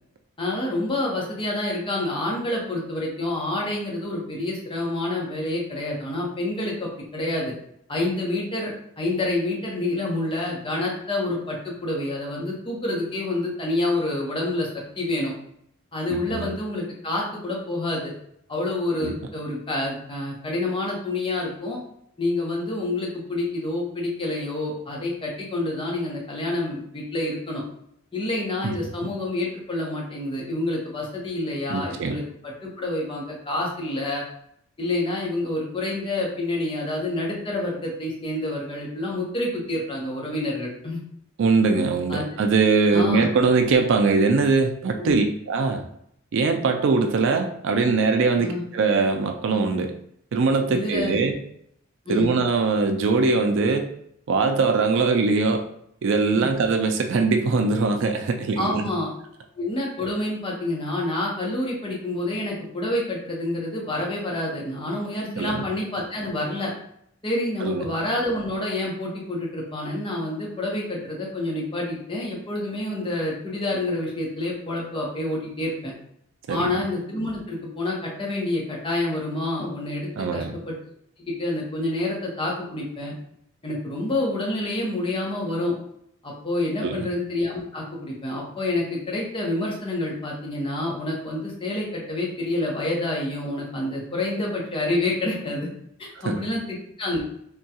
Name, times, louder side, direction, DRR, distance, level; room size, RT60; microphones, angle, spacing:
voice 1, 0.4-7.5 7.9-14.7 15.0-15.3 15.9-18.1 18.5-21.8 22.2-27.6 28.1-34.2 34.8-41.0 42.1-42.4 42.9-43.3 45.0-45.2 48.4-48.6 50.7-51.1 52.1-52.3 56.3-56.5 58.6-59.1 59.6-66.7 67.2-75.9 76.5-80.7 81.3-83.1 83.6-85.7 86.2-95.7 96.0-97.2, left 2 dB, 25° left, -3 dB, 0.8 m, -28 dB
voice 2, 16.1-16.5 19.0-19.1 28.6-28.7 31.7-32.2 41.4-45.8 46.3-49.9 50.3-51.4 52.1-53.9 54.3-55.6 56.0-58.8 65.4-65.6 67.6-67.9 76.5-76.7 80.2-80.5 86.8-87.1 96.2-96.4, right 4 dB, 60° right, 5 dB, 0.4 m, -22 dB
3.5 x 2.2 x 2.8 m, 0.71 s
head